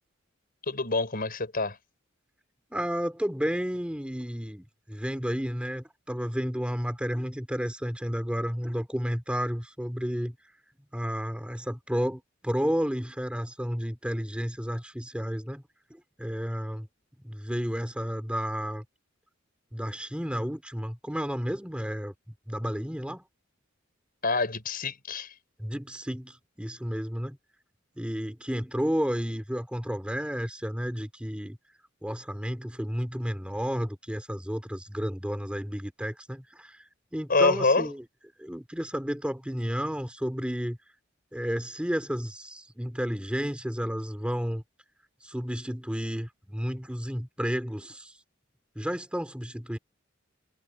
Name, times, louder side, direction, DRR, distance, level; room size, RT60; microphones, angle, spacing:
voice 1, 0.6-1.8 24.2-25.3 37.3-37.9, left 3 dB, 50° left, 5.8 m, -26 dB
voice 2, 2.7-10.3 10.9-15.6 15.9-16.9 17.2-18.8 19.7-22.1 22.5-23.2 25.6-27.4 28.0-31.6 32.0-36.8 37.1-38.0 38.4-40.8 41.3-44.6 45.2-48.1 48.8-49.8, equal, 5° right, 2.8 m, -32 dB
head